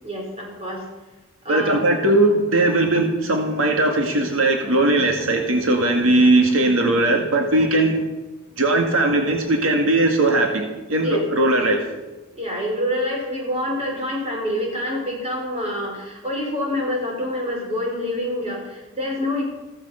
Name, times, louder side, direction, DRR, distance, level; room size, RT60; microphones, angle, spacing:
voice 1, 0.0-0.9 1.4-1.8 11.0-11.2 12.3-19.4, left 1 dB, 30° right, -1 dB, 5.3 m, -26 dB
voice 2, 1.5-8.0 8.6-11.8, right 2 dB, 80° right, 2 dB, 2.1 m, -19 dB
16.0 x 14.5 x 5.8 m, 1.1 s
head